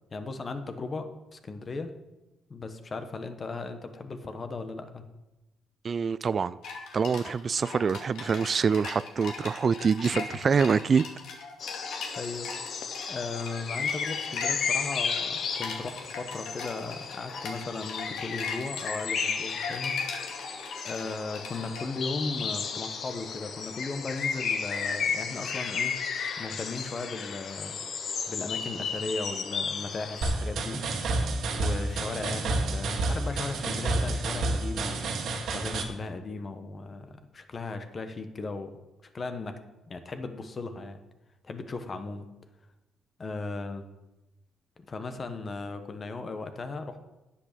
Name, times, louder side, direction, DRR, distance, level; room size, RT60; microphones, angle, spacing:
voice 1, 0.1-1.9 2.5-5.0 10.1-10.4 11.8-12.8 13.1-19.9 20.8-25.9 26.4-27.8 28.3-30.8 31.5-35.1 35.5-38.7 39.1-39.6 39.9-41.0 41.4-42.3 43.2-43.8 44.9-47.0, left 3 dB, 35° left, 1.4 m, -37 dB
voice 2, 5.8-6.6 6.9-11.0, right 6 dB, 45° right, 0.3 m, -25 dB
sound 1, 6.6-21.9, left 4 dB, 80° left, 2.5 m, -40 dB
sound 2, 11.6-30.3, left 6 dB, 60° left, 1.2 m, -33 dB
sound 3, 30.2-35.8, right 2 dB, 70° right, 1.8 m, -29 dB
9.8 x 8.6 x 6.9 m
cardioid pair, 90°, 0 cm